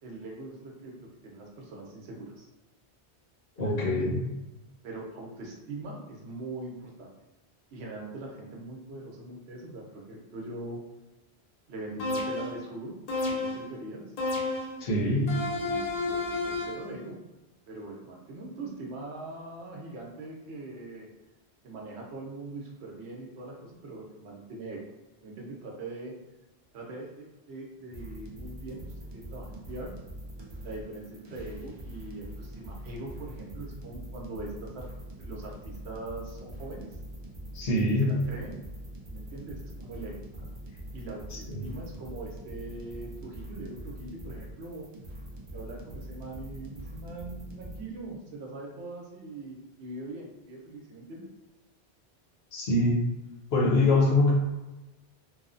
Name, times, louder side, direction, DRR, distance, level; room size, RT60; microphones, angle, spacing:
voice 1, 0.0-2.5 3.6-4.1 4.8-7.1 7.7-10.8 11.7-13.0 13.3-14.1 15.0-17.2 17.7-21.1 21.6-24.8 25.2-26.1 26.7-28.9 29.1-29.9 30.6-34.9 35.2-37.0 38.0-38.6 39.1-40.1 40.9-44.9 45.5-51.3 53.8-54.0, right 2 dB, 80° right, -1 dB, 0.9 m, -41 dB
voice 2, 3.6-4.2 14.8-15.3 37.5-38.2 41.3-41.6 52.5-53.0 53.5-54.3, left 2 dB, 70° left, -3 dB, 1.0 m, -24 dB
sound 1, 12.0-12.6 13.1-13.7 14.2-14.8 15.3-16.9, left 3 dB, 45° left, 0.6 m, -31 dB
sound 2, 27.9-47.8, right 1 dB, 45° right, 0.3 m, -43 dB
2.9 x 2.0 x 2.5 m, 1.1 s
omnidirectional pair, 1.1 m